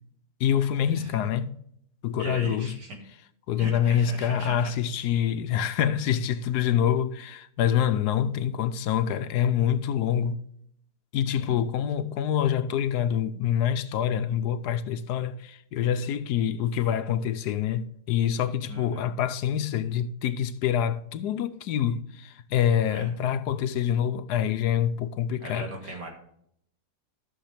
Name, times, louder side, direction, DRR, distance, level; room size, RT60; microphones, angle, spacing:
voice 1, 0.4-1.5 2.0-2.8 3.5-10.4 11.1-25.7, left 9 dB, 80° left, 1.2 m, -26 dB
voice 2, 2.2-3.0 3.6-4.7 11.3-11.6 18.7-19.1 22.9-23.1 25.4-26.1, right 2 dB, 80° right, 3.0 m, -39 dB
13.5 x 6.5 x 3.4 m
omnidirectional pair, 1.8 m